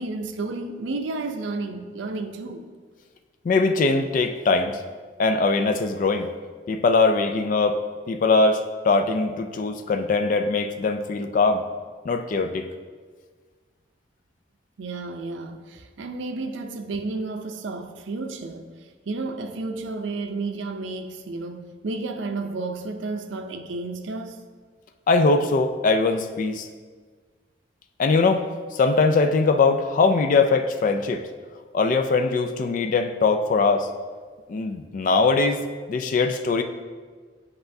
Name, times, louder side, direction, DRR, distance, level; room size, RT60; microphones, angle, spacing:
voice 1, 0.0-2.7 14.8-24.4, right 3 dB, 90° right, 7 dB, 0.5 m, -32 dB
voice 2, 3.4-4.7 5.2-6.3 6.7-7.8 8.1-11.6 12.1-12.7 25.1-26.7 28.0-28.4 28.7-31.2 31.7-33.9 34.5-35.6 35.9-36.6, left 3 dB, 45° left, 7 dB, 0.3 m, -21 dB
7.9 x 5.5 x 2.6 m, 1.5 s
head